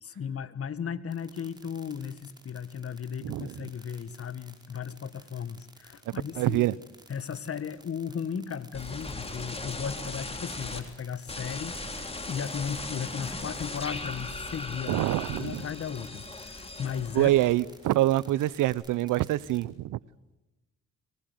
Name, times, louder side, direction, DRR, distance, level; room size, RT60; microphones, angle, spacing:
voice 1, 0.0-6.7 7.1-15.0 15.4-17.3, left 7 dB, 50° left, 15 dB, 1.4 m, -36 dB
sound 1, 1.1-19.6, right 2 dB, 15° right, 5.1 m, -54 dB
voice 2, 3.2-3.5 6.1-6.7 14.9-15.6 17.1-20.0, right 15 dB, 85° right, 23 dB, 0.7 m, -26 dB
sound 2, 8.7-10.8 11.3-17.8 18.1-18.7, left 2 dB, 20° left, 3.5 m, -38 dB
23.5 x 20.0 x 7.9 m, 1.0 s
cardioid pair, 75°, 31 cm